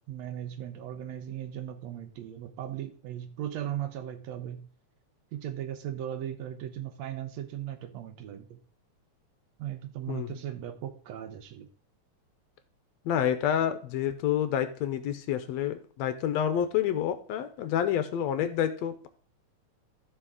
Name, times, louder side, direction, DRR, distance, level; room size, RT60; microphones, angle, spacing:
voice 1, 0.1-4.7 5.3-8.6 9.6-11.7, right 11 dB, 70° right, 8 dB, 1.9 m, -37 dB
voice 2, 13.1-19.1, left 9 dB, 75° left, 11 dB, 1.8 m, -28 dB
14.0 x 4.9 x 3.6 m, 0.43 s
omnidirectional pair, 3.3 m